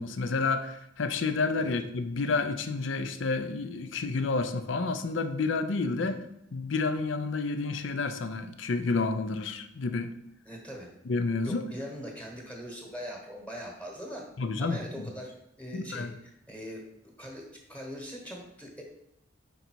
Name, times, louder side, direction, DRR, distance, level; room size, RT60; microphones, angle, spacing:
voice 1, 0.0-6.2 6.5-10.1 11.1-11.6 14.4-15.1 15.7-16.1, left 3 dB, 75° left, 9 dB, 0.5 m, -30 dB
voice 2, 10.4-10.9 11.4-14.2 14.6-16.8 17.2-18.8, equal, 10° left, 0 dB, 1.2 m, -41 dB
5.3 x 3.9 x 4.5 m, 0.80 s
head